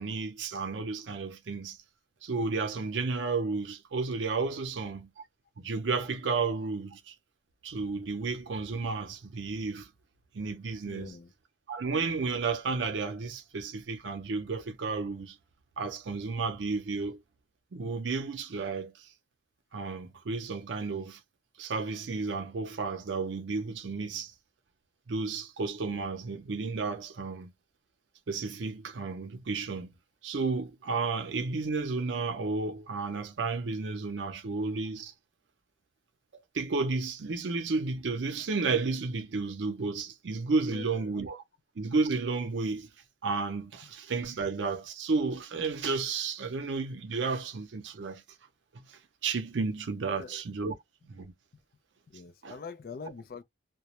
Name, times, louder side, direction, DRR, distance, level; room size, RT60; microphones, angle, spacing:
voice 1, 0.0-1.8 2.2-5.1 5.6-7.1 7.6-9.9 10.3-11.2 11.7-15.4 15.8-17.2 17.7-19.1 19.7-21.2 21.6-24.3 25.1-27.5 28.3-29.9 30.2-35.1 36.5-41.4 41.8-42.9 43.2-48.2 48.9-50.7 51.0-51.3 52.4-52.6, right 4 dB, 85° right, 0.5 m, -32 dB
voice 2, 10.9-11.3 40.6-41.2 43.8-43.9 50.1-50.8 52.1-53.4, left 5 dB, 50° left, 0.4 m, -45 dB
2.2 x 2.0 x 2.8 m
head